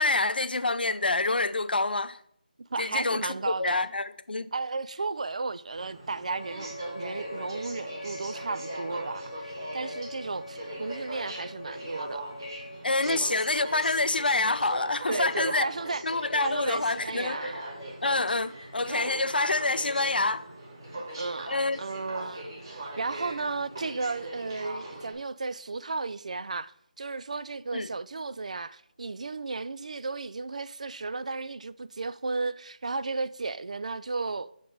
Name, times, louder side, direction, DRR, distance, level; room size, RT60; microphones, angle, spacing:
voice 1, 0.0-2.2 2.8-4.5 12.8-15.7 16.0-17.5 18.0-20.4 21.5-21.8 27.7-27.9, left 3 dB, 90° left, 0.5 m, -27 dB
voice 2, 2.7-3.9 4.5-12.2 13.1-13.4 15.1-16.0 16.4-17.6 20.9-26.7 27.0-34.5, right 3 dB, 45° right, 0.3 m, -34 dB
Aircraft, 5.7-25.1, right 1 dB, 30° right, 1.9 m, -40 dB
Wind instrument woodwind instrument, 6.3-12.8, left 1 dB, 65° left, 0.8 m, -42 dB
6.4 x 5.1 x 4.7 m
figure-of-eight pair, 170°, 5 cm